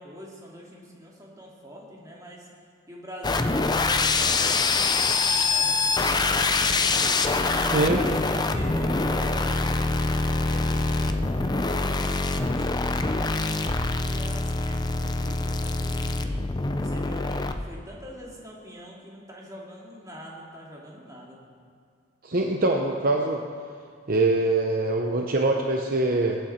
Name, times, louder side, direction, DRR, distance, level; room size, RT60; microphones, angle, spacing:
voice 1, 0.0-2.5 2.9-7.2 7.7-13.3 13.7-16.4 16.7-21.4, equal, 20° right, -3 dB, 2.3 m, -44 dB
sound 1, 3.2-17.6, left 3 dB, 20° left, 0.5 m, -25 dB
voice 2, 7.7-8.0 22.2-23.4 24.1-26.4, right 2 dB, 45° right, 1 dB, 0.8 m, -23 dB
22.0 x 9.1 x 4.4 m, 2.1 s
head